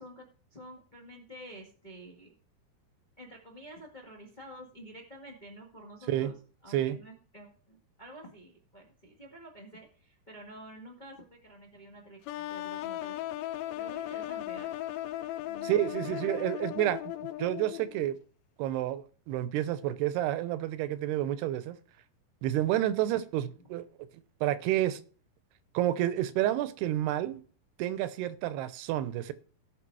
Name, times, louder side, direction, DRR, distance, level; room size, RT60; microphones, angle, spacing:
voice 1, 0.0-2.3 3.2-6.3 6.6-13.2 13.4-14.7 15.5-16.4 23.0-23.3, right 1 dB, 60° left, 0.4 m, -49 dB
sound 1, 12.3-18.1, left 14 dB, 80° left, 2.3 m, -37 dB
voice 2, 15.6-18.2 18.6-21.8 22.4-23.8 24.4-25.0 25.7-27.4 27.8-29.3, right 13 dB, 85° right, 2.8 m, -30 dB
17.5 x 6.0 x 4.7 m
omnidirectional pair, 4.6 m